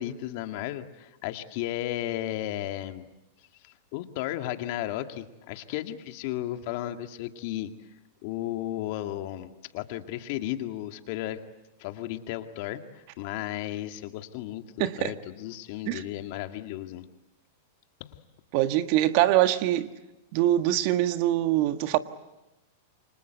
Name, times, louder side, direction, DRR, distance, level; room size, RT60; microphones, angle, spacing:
voice 1, 0.0-3.1 3.6-7.7 8.2-11.4 11.8-17.1 18.0-18.2, left 13 dB, 55° left, 2.1 m, -34 dB
voice 2, 14.8-15.1 15.9-16.0 18.5-19.9 20.3-22.0, right 14 dB, 55° right, 1.5 m, -23 dB
29.0 x 25.5 x 8.0 m
hypercardioid pair, 110°, 0 cm